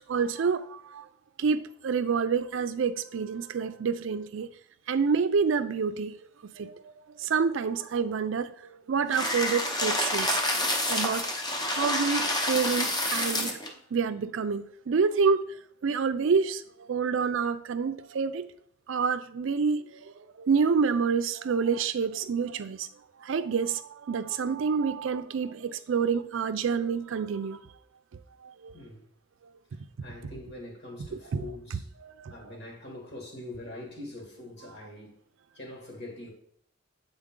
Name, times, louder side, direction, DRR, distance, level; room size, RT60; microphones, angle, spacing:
voice 1, 0.1-1.0 1.4-4.5 4.9-6.9 7.2-8.6 8.9-10.4 10.9-11.3 11.7-13.6 13.9-15.4 15.8-18.5 18.9-22.9 23.2-27.6 28.4-28.7 31.3-31.5 31.7-32.3, right 5 dB, 65° right, 0.4 m, -28 dB
sound 1, 9.1-13.7, left 1 dB, 20° left, 0.8 m, -28 dB
voice 2, 28.7-29.1 30.0-31.8 32.3-35.2 35.5-36.3, left 1 dB, 55° left, 2.1 m, -43 dB
8.0 x 4.0 x 3.7 m
head